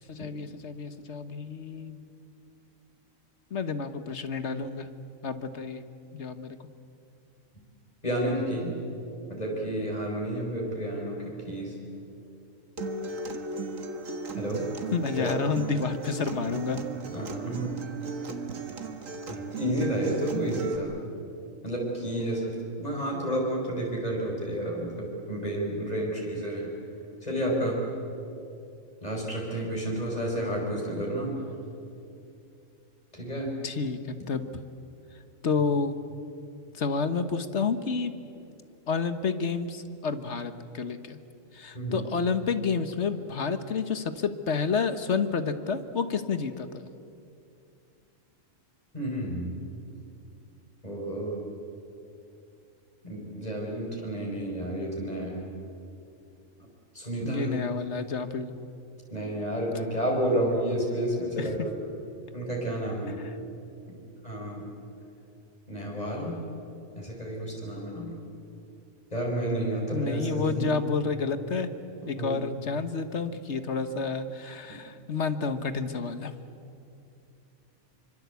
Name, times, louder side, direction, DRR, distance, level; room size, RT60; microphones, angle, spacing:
voice 1, 0.1-2.0 3.5-4.9 5.2-5.8 6.1-6.6 14.9-16.8 33.6-34.6 35.4-35.9 36.7-38.1 38.9-41.2 41.5-46.9 57.2-58.5 61.4-61.6 63.2-63.3 69.9-71.7 72.1-76.3, left 5 dB, 60° left, 10 dB, 1.5 m, -30 dB
voice 2, 8.0-8.8 9.3-11.7 14.4-14.7 15.1-15.4 17.1-17.8 19.3-21.0 21.6-22.5 22.8-26.7 27.2-27.8 29.0-31.4 33.1-33.5 41.7-42.0 48.9-49.5 50.8-51.4 53.0-55.5 56.9-57.7 59.1-61.8 62.3-63.2 64.2-64.7 65.7-66.3 67.0-68.2 69.1-70.7 72.0-72.4, right 1 dB, 30° left, -2 dB, 5.5 m, -30 dB
Acoustic guitar, 12.8-20.8, right 3 dB, 75° right, 2.0 m, -36 dB
25.0 x 25.0 x 8.3 m, 2.6 s
omnidirectional pair, 1.4 m